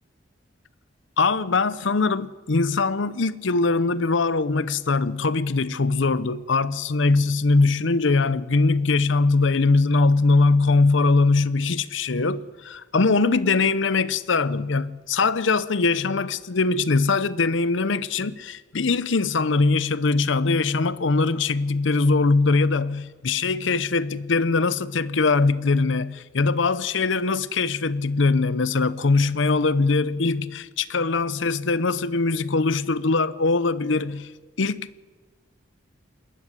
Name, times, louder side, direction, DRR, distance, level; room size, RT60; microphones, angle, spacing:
voice 1, 1.2-34.3 34.6-34.9, left 3 dB, 75° left, 0.8 m, -22 dB
20.5 x 15.5 x 9.9 m
head